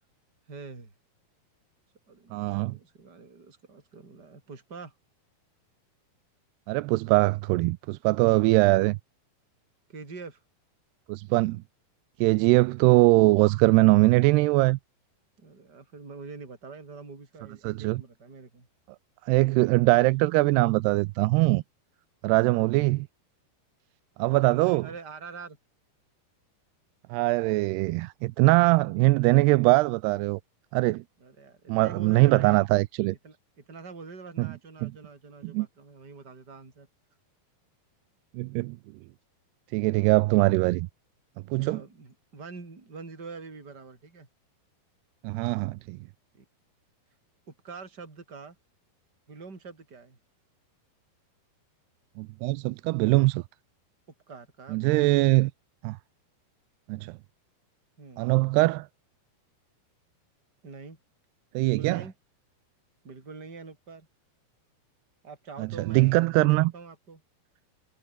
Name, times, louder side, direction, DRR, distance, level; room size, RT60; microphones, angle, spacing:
voice 1, 0.5-0.9 2.1-4.9 9.9-10.4 15.4-18.7 24.3-25.6 31.2-32.6 33.2-36.9 41.6-44.3 46.3-46.4 47.5-48.6 49.3-50.2 54.3-55.2 58.0-58.3 60.6-61.0 61.6-62.1 63.0-64.1 65.2-67.2, right 4 dB, 25° right, 5.1 m, -45 dB
voice 2, 2.3-2.8 6.7-9.0 11.1-11.6 12.2-14.8 17.6-18.0 19.3-21.6 22.2-23.1 24.2-24.9 27.1-30.4 30.7-31.0 31.7-33.2 34.4-34.5 34.8-34.9 35.4-35.7 38.3-38.8 39.7-40.9 41.5-41.8 45.2-46.0 52.2-53.4 54.7-55.5 55.8-56.0 56.9-57.1 58.2-58.9 61.5-62.0 65.6-66.7, right 21 dB, 85° right, 2.7 m, -22 dB
omnidirectional pair, 4.7 m